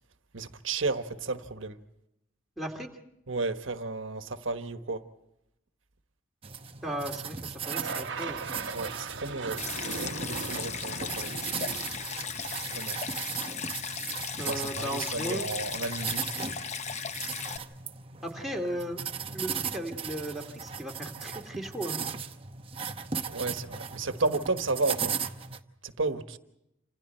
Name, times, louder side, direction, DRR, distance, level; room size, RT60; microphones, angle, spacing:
voice 1, 0.3-1.8 3.3-5.1 8.7-11.4 12.6-13.0 14.4-16.3 23.3-25.2 25.8-26.4, right 3 dB, 85° right, 1.3 m, -33 dB
voice 2, 2.6-2.9 6.8-8.4 14.4-15.5 18.2-19.0 19.3-22.0, right 1 dB, ahead, 2.4 m, -36 dB
sound 1, 6.4-25.6, right 6 dB, 30° right, 0.9 m, -37 dB
sound 2, 7.6-13.0, right 4 dB, 65° right, 1.1 m, -39 dB
Stream, 9.6-17.6, left 6 dB, 35° left, 0.8 m, -36 dB
28.5 x 26.5 x 4.4 m
head